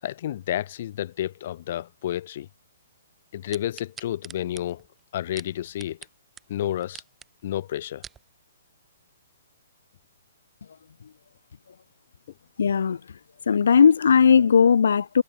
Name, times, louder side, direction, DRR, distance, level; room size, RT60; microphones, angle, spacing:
voice 1, 0.0-2.5 3.3-4.8 5.1-6.0 6.5-7.0 7.4-8.0, left 12 dB, 45° left, 6.8 m, -30 dB
sound 1, 3.5-6.1 6.4-6.5 6.8-7.3 7.8-8.2 8.8-8.9, right 7 dB, 10° right, 7.9 m, -44 dB
voice 2, 12.6-13.0 13.5-15.2, left 6 dB, 75° left, 2.6 m, -17 dB
hypercardioid pair, 165°, 0 cm